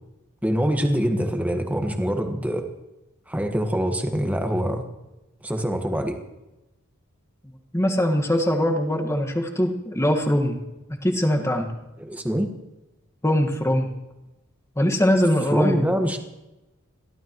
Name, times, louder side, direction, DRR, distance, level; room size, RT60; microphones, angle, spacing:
voice 1, 0.4-2.7 3.3-4.9 5.4-6.2 12.0-12.5 15.5-16.2, equal, 5° right, 4 dB, 1.5 m, -24 dB
voice 2, 7.7-10.6 11.0-11.7 13.2-13.9 14.8-15.8, equal, 15° left, 3 dB, 1.7 m, -22 dB
29.5 x 12.5 x 3.1 m, 1.0 s
head